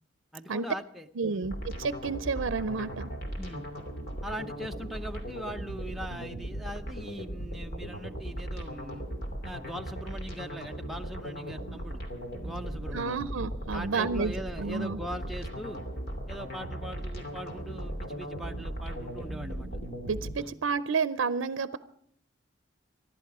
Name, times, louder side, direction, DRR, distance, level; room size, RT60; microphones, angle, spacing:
voice 1, 0.3-1.5 3.4-3.7 4.2-9.1 9.4-12.0 12.4-13.2 13.7-15.8 16.3-19.7 20.4-20.5, equal, ahead, 3 dB, 0.8 m, -41 dB
voice 2, 1.2-3.1 12.9-14.3 14.6-15.0 20.1-21.8, right 5 dB, 90° right, 14 dB, 0.5 m, -30 dB
sound 1, 1.4-20.3, equal, 50° left, 2.9 m, -38 dB
25.5 x 11.5 x 4.8 m, 0.66 s
head